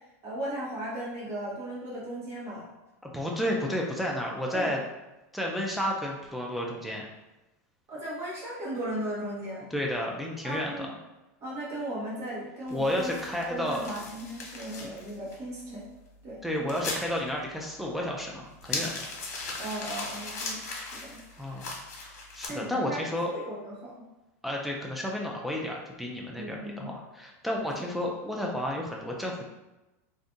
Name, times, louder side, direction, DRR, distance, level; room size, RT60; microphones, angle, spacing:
voice 1, 0.2-2.6 4.5-4.8 7.9-9.7 10.4-10.9 11.4-13.1 13.4-15.9 16.2-16.7 19.6-21.2 22.5-23.0 23.3-23.9 26.3-26.9, right 1 dB, 30° right, -7 dB, 1.1 m, -36 dB
voice 2, 3.0-4.8 5.3-7.1 9.7-10.9 12.7-13.8 14.8-14.9 16.4-19.1 21.4-21.8 22.3-23.3 24.4-29.5, left 1 dB, ahead, -2 dB, 0.3 m, -31 dB
sound 1, 12.7-22.5, left 3 dB, 85° left, 1.0 m, -40 dB
2.6 x 2.4 x 3.7 m, 1.0 s
supercardioid pair, 155°, 9 cm